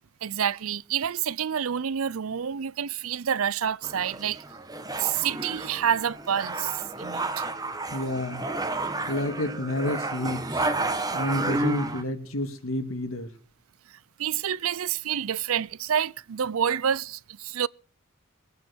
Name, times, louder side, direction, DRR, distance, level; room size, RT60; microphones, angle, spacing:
voice 1, 0.2-4.4 5.0-7.4 14.2-17.7, right 8 dB, 85° right, 0.5 m, -28 dB
sound 1, 3.8-12.0, right 2 dB, 20° right, 1.7 m, -31 dB
voice 2, 7.9-8.5 9.1-10.7 11.1-13.3, left 1 dB, 75° left, 2.7 m, -30 dB
22.5 x 9.2 x 4.4 m
head